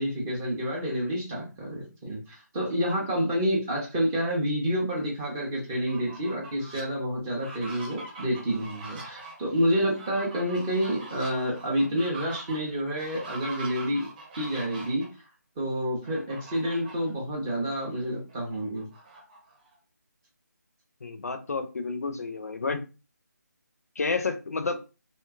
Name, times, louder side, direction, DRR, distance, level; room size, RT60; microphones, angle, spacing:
voice 1, 0.0-14.1 14.4-15.0 15.6-18.9, equal, 10° right, 0.4 m, -28 dB
Fowl, 5.7-6.8 7.3-15.1 16.0-17.1 17.5-17.6 18.0-19.7, right 3 dB, 30° right, 0.8 m, -43 dB
voice 2, 21.0-22.8 24.0-24.8, left 4 dB, 55° left, 0.4 m, -30 dB
2.7 x 2.2 x 2.3 m
figure-of-eight pair, 155°, 10 cm